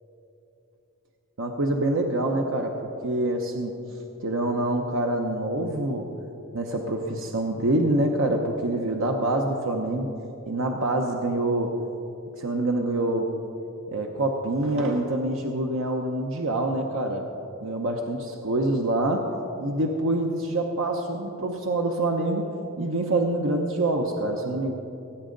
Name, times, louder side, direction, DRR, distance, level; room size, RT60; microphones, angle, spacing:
voice 1, 1.4-3.7 4.2-6.1 6.5-10.1 10.5-11.7 12.4-13.3 13.9-17.2 17.6-18.2 18.4-19.3 19.6-22.5 22.8-24.7, right 2 dB, 65° right, 2 dB, 0.8 m, -26 dB
19.0 x 8.6 x 3.9 m, 2.9 s
head